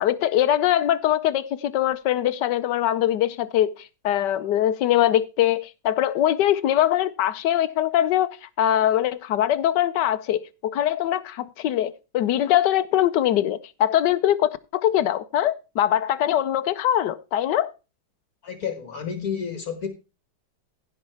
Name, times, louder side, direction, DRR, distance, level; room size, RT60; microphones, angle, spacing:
voice 1, 0.0-8.3 8.6-17.7, left 11 dB, 90° left, 1.4 m, -22 dB
voice 2, 18.4-19.9, left 7 dB, 60° left, 1.8 m, -30 dB
16.0 x 5.4 x 4.3 m
omnidirectional pair, 1.8 m